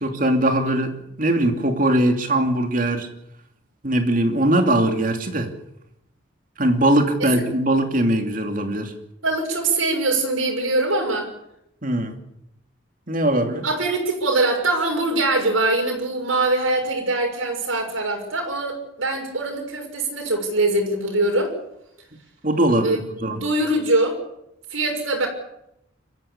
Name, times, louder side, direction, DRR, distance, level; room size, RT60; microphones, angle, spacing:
voice 1, 0.0-3.1 3.8-5.5 6.6-8.9 11.8-12.1 13.1-13.6 22.4-23.4, right 1 dB, 40° right, 2.7 m, -21 dB
voice 2, 9.2-11.3 13.6-21.5 22.8-24.2 24.7-25.3, right 2 dB, 80° right, 6.3 m, -23 dB
25.5 x 14.5 x 8.5 m
head